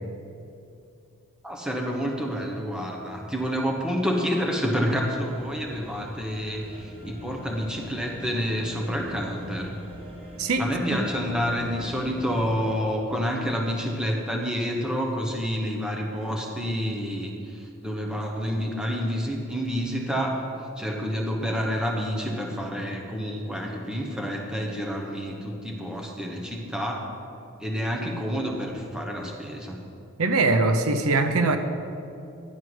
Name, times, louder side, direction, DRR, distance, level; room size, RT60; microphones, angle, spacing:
voice 1, 1.4-9.7 10.6-20.4 20.8-27.0 27.6-29.7, equal, 5° right, 0 dB, 1.0 m, -28 dB
sound 1, 5.2-12.8, equal, 25° right, 1.4 m, -43 dB
voice 2, 10.4-11.0 30.2-31.6, right 3 dB, 85° right, 8 dB, 0.7 m, -22 dB
11.0 x 4.6 x 7.8 m, 2.6 s
head